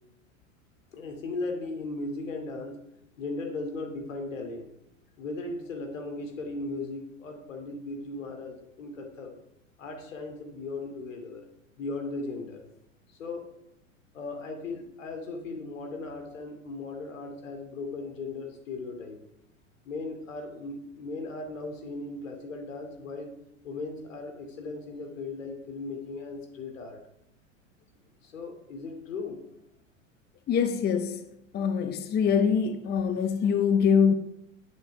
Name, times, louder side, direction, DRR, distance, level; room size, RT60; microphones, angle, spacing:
voice 1, 0.9-2.8 3.2-4.7 5.2-9.3 9.8-11.4 11.8-12.6 13.2-13.5 14.1-19.2 19.9-23.4 23.6-27.0 28.2-29.4, left 3 dB, 75° left, 2.6 m, -37 dB
voice 2, 30.5-31.3 31.5-34.1, left 6 dB, 25° left, 0.8 m, -24 dB
10.0 x 8.1 x 4.7 m
hypercardioid pair, 95°, 39 cm